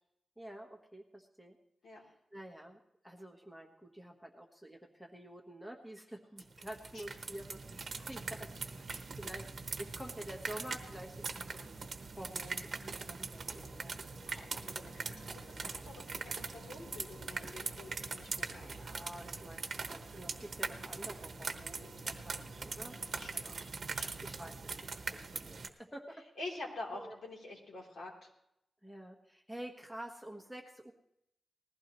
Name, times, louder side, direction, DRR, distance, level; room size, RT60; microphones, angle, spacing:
voice 1, 0.4-1.6 2.0-9.5 9.8-14.0 18.5-23.0 23.3-23.8 24.2-26.3 26.9-27.1 28.8-30.9, right 1 dB, 5° left, 1 dB, 1.3 m, -49 dB
sound 1, 6.4-25.7, right 4 dB, 50° right, 1.1 m, -42 dB
Engine, 13.4-23.4, left 1 dB, 45° left, 1.8 m, -59 dB
voice 2, 14.2-18.7 22.9-24.2 26.4-28.3, left 2 dB, 70° left, -1 dB, 3.4 m, -48 dB
20.0 x 15.0 x 3.1 m, 0.80 s
wide cardioid pair, 150°, 0 cm